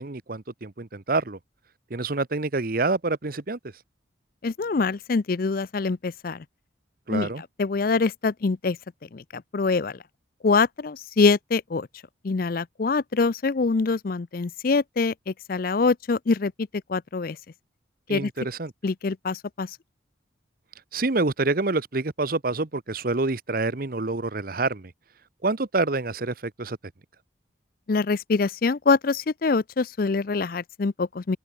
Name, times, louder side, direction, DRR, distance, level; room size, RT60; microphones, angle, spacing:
voice 1, 0.0-1.4 1.9-3.6 7.1-7.4 18.1-18.7 20.9-24.9 25.4-26.8, right 3 dB, 50° right, 1.0 m, -27 dB
voice 2, 4.4-6.4 7.1-7.3 7.6-8.8 9.1-10.0 10.4-11.9 12.2-16.5 16.9-17.4 18.1-18.3 18.8-19.7 27.9-31.4, left 4 dB, 50° left, 0.5 m, -24 dB
open air
head